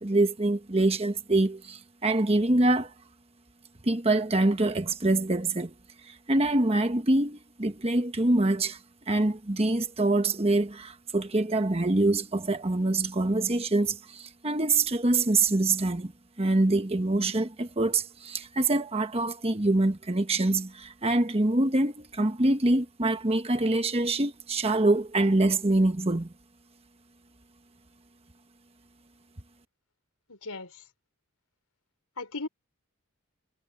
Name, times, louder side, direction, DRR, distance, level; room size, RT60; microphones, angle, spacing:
voice 1, 0.0-2.9 3.8-5.7 6.1-8.8 9.1-16.1 16.4-26.3, right 2 dB, 25° right, 1.2 m, -25 dB
voice 2, 30.3-30.8 32.2-32.5, left 3 dB, 80° left, 5.1 m, -37 dB
head